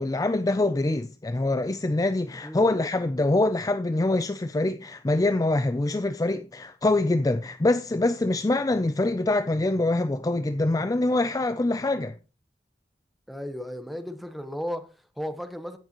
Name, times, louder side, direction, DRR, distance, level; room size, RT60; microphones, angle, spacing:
voice 1, 0.0-12.2, left 2 dB, 20° left, 0.4 m, -24 dB
voice 2, 13.3-15.8, equal, ahead, 1.0 m, -35 dB
16.0 x 6.8 x 2.9 m
head